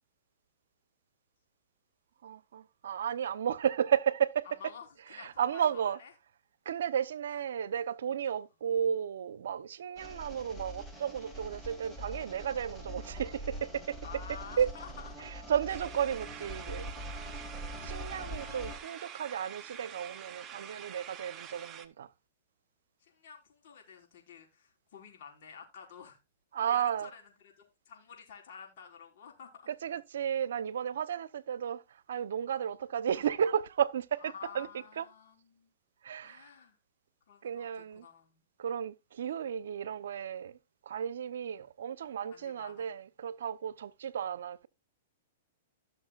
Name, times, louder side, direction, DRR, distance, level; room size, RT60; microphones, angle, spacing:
voice 1, 2.2-4.4 5.2-6.0 6.7-14.0 14.6-14.7 15.5-16.9 17.8-22.1 26.5-27.1 29.8-31.8 32.1-34.7 35.0-35.1 36.0-36.5 37.4-38.1 38.6-40.6 40.9-44.7, right 8 dB, 75° right, 0.8 m, -33 dB
voice 2, 4.4-6.1 7.3-7.4 10.0-10.2 14.0-15.2 17.7-17.9 18.3-18.6 21.3-21.4 23.0-26.2 26.6-29.7 33.1-33.3 34.2-35.7 36.2-36.8 37.3-38.4 41.4-41.7 42.3-43.0, left 7 dB, 60° left, 4.9 m, -51 dB
sound 1, 10.0-18.8, equal, 5° left, 2.3 m, -43 dB
sound 2, 15.7-21.9, right 9 dB, 25° right, 1.1 m, -47 dB
17.0 x 6.5 x 2.4 m
hypercardioid pair, 135°, 0 cm